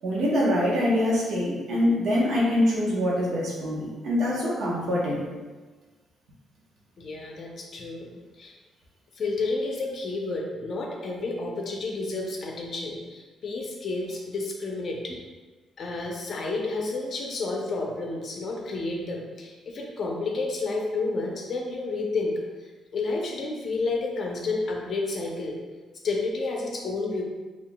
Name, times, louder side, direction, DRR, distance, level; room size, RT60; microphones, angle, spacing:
voice 1, 0.0-5.3, left 1 dB, 60° right, -5 dB, 0.8 m, -24 dB
voice 2, 7.0-8.1 8.4-8.5 9.1-15.2 15.8-22.3 22.6-25.6 26.0-27.2, left 3 dB, 40° left, 0 dB, 0.5 m, -30 dB
5.7 x 2.4 x 2.2 m, 1.3 s
cardioid pair, 170°, 0 cm